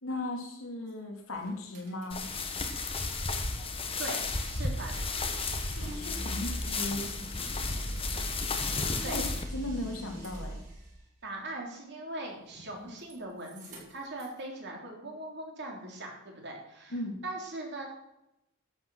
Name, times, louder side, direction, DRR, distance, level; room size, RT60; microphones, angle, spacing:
voice 1, 0.0-2.3 5.7-7.1 9.1-9.2 9.5-10.6 16.9-17.2, left 1 dB, 75° left, 1 dB, 2.8 m, -37 dB
sound 1, 0.9-1.0 1.3-2.9 3.2-11.0 12.4-13.1 13.4-14.4, equal, 35° right, 5.2 m, -42 dB
sound 2, 2.1-9.4, left 3 dB, 25° left, 1.2 m, -33 dB
voice 2, 4.0-5.3 9.0-9.2 11.2-17.0 17.2-17.9, right 2 dB, 55° right, 0 dB, 3.6 m, -40 dB
11.5 x 8.7 x 6.3 m, 0.87 s
head